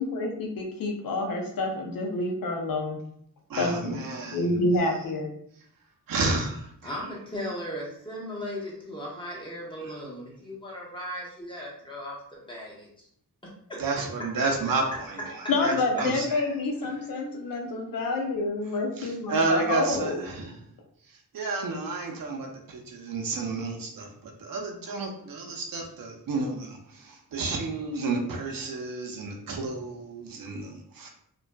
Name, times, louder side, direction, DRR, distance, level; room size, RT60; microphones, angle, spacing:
voice 1, 0.0-3.0 3.6-4.0 4.3-5.3 15.5-20.2, left 2 dB, 70° left, 2 dB, 0.6 m, -28 dB
voice 2, 3.5-4.5 6.1-7.0 9.8-10.0 13.8-16.4 19.0-20.6 21.3-31.1, right 3 dB, 70° right, 1 dB, 0.6 m, -31 dB
voice 3, 6.8-12.2 12.5-12.9 13.7-13.8, equal, 15° left, -4 dB, 0.9 m, -37 dB
2.5 x 2.3 x 2.2 m, 0.66 s
cardioid pair, 80°, 36 cm